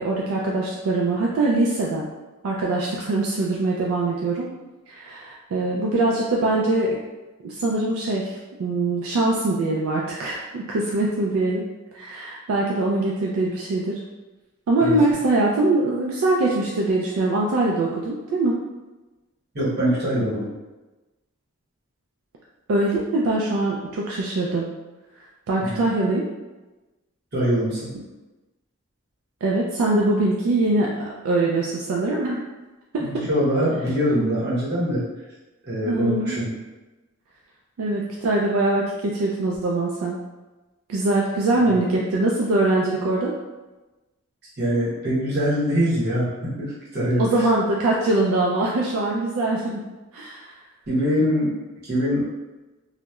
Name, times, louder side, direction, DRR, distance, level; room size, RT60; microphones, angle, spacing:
voice 1, 0.0-2.1 2.4-4.5 4.9-7.0 7.4-11.6 11.9-14.0 14.7-18.6 22.7-24.7 25.5-26.3 29.4-30.9 31.2-32.4 32.9-33.3 35.9-36.4 37.8-40.2 40.9-43.3 47.2-49.8 50.1-50.5, right 2 dB, 80° right, -3 dB, 0.3 m, -23 dB
voice 2, 19.5-20.5 25.6-25.8 27.3-27.9 33.0-35.1 35.6-36.5 41.7-41.8 44.6-47.3 50.9-51.5 51.8-52.2, equal, 50° right, -8 dB, 0.9 m, -23 dB
2.8 x 2.1 x 2.2 m, 1.1 s
head